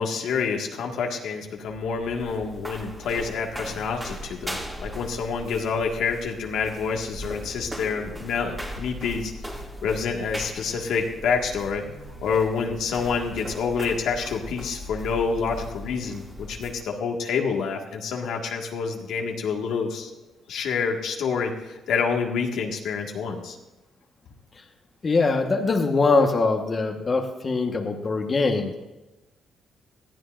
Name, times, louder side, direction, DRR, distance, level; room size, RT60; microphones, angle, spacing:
voice 1, 0.0-9.3 9.8-11.8 12.2-20.1 20.5-23.6, left 5 dB, 80° left, 1 dB, 1.7 m, -27 dB
sound 1, 1.6-16.9, equal, 10° right, 2.4 m, -39 dB
voice 2, 25.0-28.7, left 3 dB, 35° left, 3 dB, 1.3 m, -22 dB
20.0 x 14.0 x 2.5 m, 1.1 s
cardioid pair, 90°, 0 cm